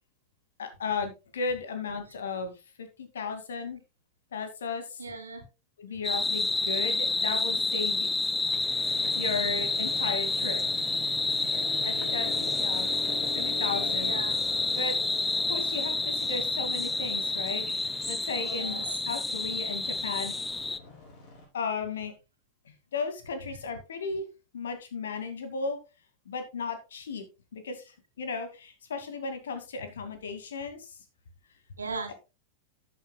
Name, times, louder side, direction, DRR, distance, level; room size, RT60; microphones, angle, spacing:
voice 1, 0.6-3.8 4.3-5.0 5.8-8.1 9.1-10.8 11.8-12.3 12.6-12.9 13.3-14.3 14.8-15.0 15.5-17.7 18.1-18.8 19.1-20.3 21.5-22.1 22.6-24.2 24.5-25.8 26.3-27.3 27.5-31.0 32.1-32.2, left 4 dB, 65° left, 8 dB, 2.2 m, -35 dB
voice 2, 5.0-5.4 14.0-14.3 18.6-18.8 31.8-32.1, right 4 dB, 75° right, 6 dB, 2.5 m, -37 dB
sound 1, 6.0-20.8, left 3 dB, 10° left, 0.5 m, -29 dB
Motorcycle, 8.4-21.4, left 4 dB, 45° left, 5.5 m, -43 dB
12.5 x 8.8 x 2.3 m, 0.28 s
figure-of-eight pair, 90°, 0 cm